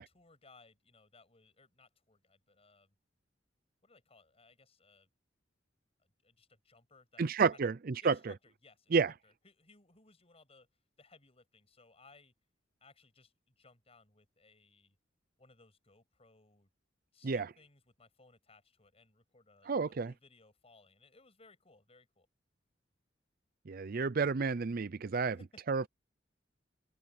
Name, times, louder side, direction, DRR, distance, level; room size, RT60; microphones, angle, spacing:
voice 1, 0.0-2.9 3.8-5.1 6.0-7.7 8.0-10.7 11.0-12.3 12.8-15.0 15.4-16.7 17.1-22.3 25.2-25.6, left 3 dB, 35° left, 7.4 m, -63 dB
voice 2, 7.2-8.1 8.9-9.1 17.2-17.5 19.7-20.1 23.7-25.4 25.7-25.9, right 5 dB, 50° right, 0.5 m, -30 dB
open air
head